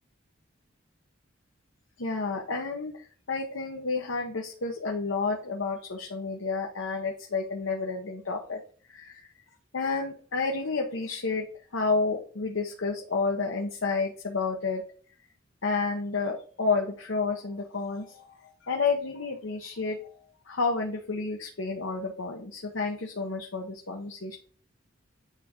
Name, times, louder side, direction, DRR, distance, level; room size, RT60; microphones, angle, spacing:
voice 1, 2.0-8.6 8.9-9.3 9.7-11.5 11.7-14.8 15.6-20.0 20.5-24.3, left 4 dB, 80° left, 1 dB, 1.0 m, -30 dB
9.4 x 3.6 x 3.0 m, 0.43 s
head